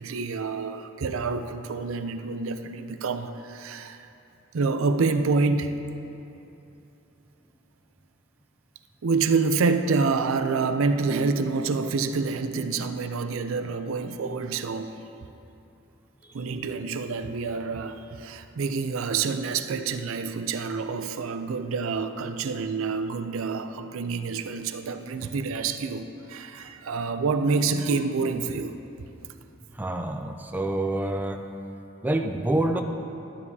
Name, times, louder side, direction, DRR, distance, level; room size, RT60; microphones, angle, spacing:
voice 1, 0.0-4.1 4.5-5.8 9.0-15.0 16.3-28.8, right 4 dB, 85° right, 8 dB, 0.5 m, -27 dB
voice 2, 29.7-31.4 32.0-32.8, right 1 dB, 10° right, 4 dB, 0.4 m, -27 dB
12.5 x 9.6 x 2.8 m, 2.8 s
head